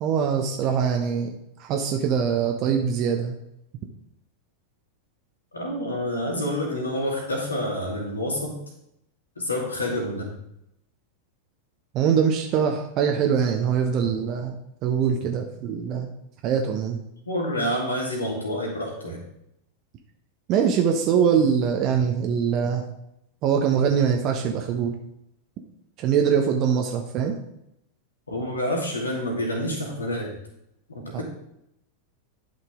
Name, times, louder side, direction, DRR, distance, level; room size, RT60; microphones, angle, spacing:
voice 1, 0.0-3.4 11.9-16.1 16.4-17.0 20.5-22.9 23.4-25.0 26.0-27.4 31.1-31.2, right 7 dB, 40° right, 3 dB, 0.9 m, -23 dB
voice 2, 5.5-8.6 9.4-10.3 17.3-19.2 28.3-30.4 30.9-31.2, left 1 dB, 75° left, 0 dB, 2.5 m, -28 dB
11.0 x 5.9 x 3.7 m, 0.79 s
figure-of-eight pair, 90°, 0 cm